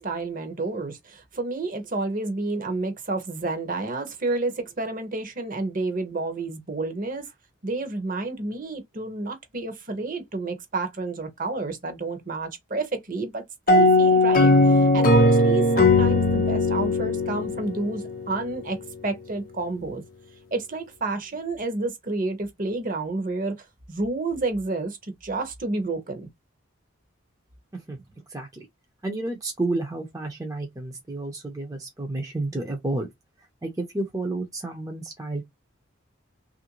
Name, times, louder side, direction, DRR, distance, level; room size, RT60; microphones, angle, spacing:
voice 1, 0.0-7.3 7.6-18.8 19.0-20.0 20.5-26.3, right 3 dB, 40° right, 0.8 m, -30 dB
sound 1, 13.7-18.3, left 2 dB, 45° left, 0.5 m, -19 dB
voice 2, 29.0-33.1 33.6-35.4, right 2 dB, 15° right, 0.5 m, -30 dB
3.1 x 2.5 x 2.8 m
head